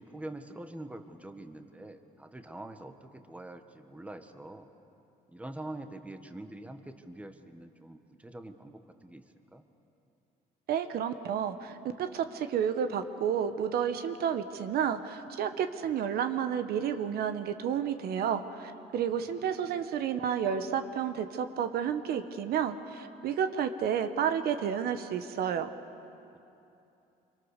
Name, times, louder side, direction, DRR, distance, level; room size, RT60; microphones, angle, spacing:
voice 1, 0.0-4.7 5.3-9.2 9.5-9.6 26.3-26.4, right 1 dB, 10° right, 7 dB, 1.3 m, -45 dB
voice 2, 10.7-25.7, right 8 dB, 65° right, 9 dB, 1.2 m, -31 dB
26.0 x 23.5 x 6.6 m, 2.7 s
cardioid pair, 110°, 17 cm